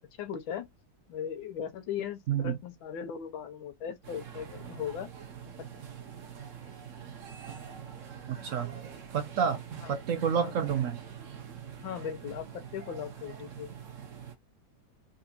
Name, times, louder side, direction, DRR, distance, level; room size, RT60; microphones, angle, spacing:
voice 1, 0.2-0.7 1.1-5.1 9.8-10.0 10.4-10.5 11.8-13.7, left 8 dB, 85° left, 1.6 m, -38 dB
sound 1, 4.0-14.4, right 8 dB, 50° right, 1.0 m, -45 dB
voice 2, 8.3-8.8 9.1-9.6 9.9-11.0, right 7 dB, 75° right, 0.7 m, -29 dB
3.9 x 3.3 x 2.6 m
omnidirectional pair, 2.1 m